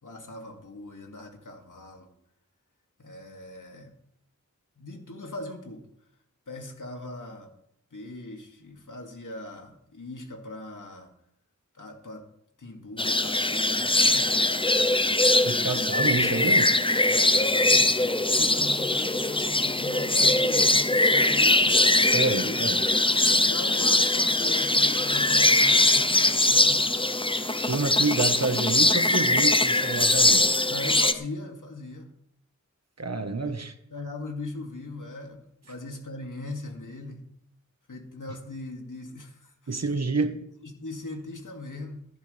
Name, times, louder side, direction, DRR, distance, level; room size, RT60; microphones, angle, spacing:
voice 1, 0.0-2.1 3.0-3.9 4.8-5.8 6.5-7.5 7.9-11.1 11.7-12.3 12.6-15.9 17.0-21.8 22.4-27.1 30.7-32.1 33.4-33.6 33.9-37.3 37.9-39.8 40.6-42.1, left 2 dB, 90° left, 2 dB, 2.5 m, -40 dB
sound 1, 13.0-31.1, left 2 dB, 15° left, 0.8 m, -22 dB
voice 2, 15.4-16.7 22.0-22.8 27.7-30.5 33.0-33.7 39.7-40.4, right 3 dB, 55° right, 8 dB, 1.3 m, -28 dB
16.0 x 13.5 x 3.4 m, 0.74 s
wide cardioid pair, 70°, 30 cm